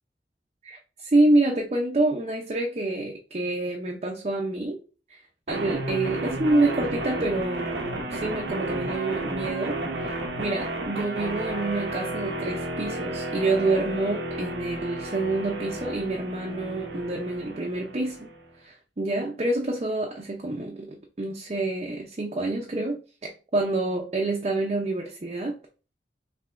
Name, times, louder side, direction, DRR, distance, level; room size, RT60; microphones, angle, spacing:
voice 1, 0.6-4.8 5.1-5.2 5.5-18.3 18.6-25.6, right 2 dB, 35° right, 0.6 m, -27 dB
sound 1, 5.5-18.5, right 2 dB, 85° right, 0.9 m, -32 dB
5.5 x 3.2 x 2.5 m
head